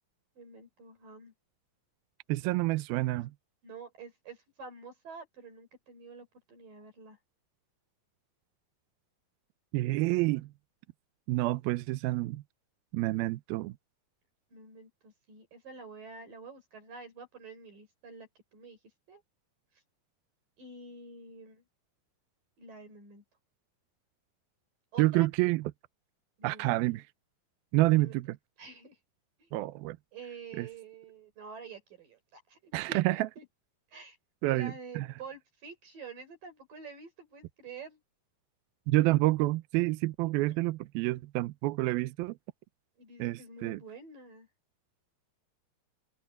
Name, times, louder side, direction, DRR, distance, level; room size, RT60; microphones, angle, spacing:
voice 1, 0.4-1.3 3.6-7.2 14.5-18.8 19.1-19.2 20.6-21.6 22.6-23.2 24.9-25.3 26.4-26.9 28.0-28.1 28.6-29.0 29.4-29.5 30.1-33.5 33.9-34.2 34.5-38.0 43.0-44.5, right 4 dB, 60° right, 6.5 m, -48 dB
voice 2, 2.3-3.3 9.7-10.5 11.3-12.4 12.9-13.7 25.0-25.6 26.4-27.0 27.7-28.4 29.5-30.0 30.6-30.7 32.7-33.3 34.4-35.1 38.9-42.4 43.2-43.8, right 19 dB, 80° right, 2.5 m, -28 dB
omnidirectional pair, 4.3 m